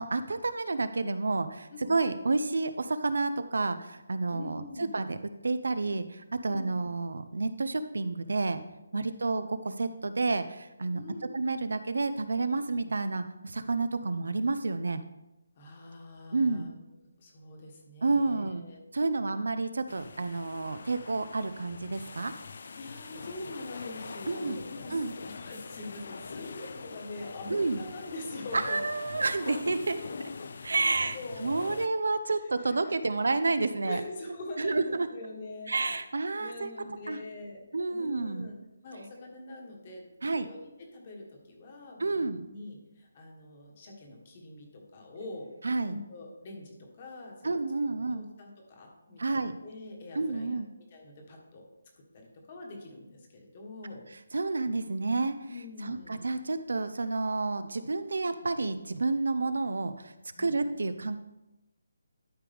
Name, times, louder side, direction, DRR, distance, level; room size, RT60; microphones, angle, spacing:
voice 1, 0.0-5.2 5.4-8.6 8.9-15.0 16.3-16.7 18.0-18.6 18.9-22.3 24.3-24.6 24.9-25.1 27.5-27.8 28.5-30.0 30.6-34.0 34.6-35.1 35.7-37.2 37.7-38.5 40.2-40.5 42.0-42.4 45.6-46.0 47.4-48.2 49.2-49.6 50.1-50.7 54.3-55.4 55.8-60.1 60.4-61.2, right 3 dB, 70° right, 11 dB, 0.6 m, -30 dB
voice 2, 4.3-4.9 6.5-6.7 8.9-9.1 10.9-11.4 15.6-16.7 17.2-18.8 22.8-28.8 31.1-31.8 32.6-33.0 33.8-36.1 36.4-37.6 37.9-38.6 38.8-45.5 45.9-47.5 48.1-50.6 50.9-51.6 52.1-54.1 55.5-56.2 60.4-60.5, left 2 dB, 20° left, 1 dB, 1.3 m, -44 dB
sound 1, 19.9-31.9, left 4 dB, 40° left, 0.4 m, -43 dB
12.0 x 5.0 x 3.5 m, 0.96 s
hypercardioid pair, 180°, 0 cm